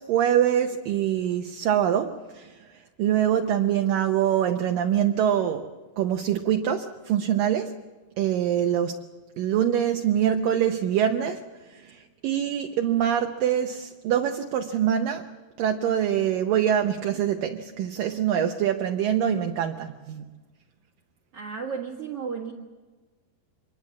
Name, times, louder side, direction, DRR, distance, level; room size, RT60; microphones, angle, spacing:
voice 1, 0.0-2.5 3.0-5.7 6.0-7.7 8.2-9.0 9.4-11.4 11.7-15.3 15.6-20.3, right 9 dB, 70° right, 5 dB, 2.3 m, -24 dB
voice 2, 21.3-22.5, right 6 dB, 50° right, 2 dB, 2.0 m, -33 dB
26.0 x 21.5 x 7.3 m, 1.3 s
omnidirectional pair, 4.7 m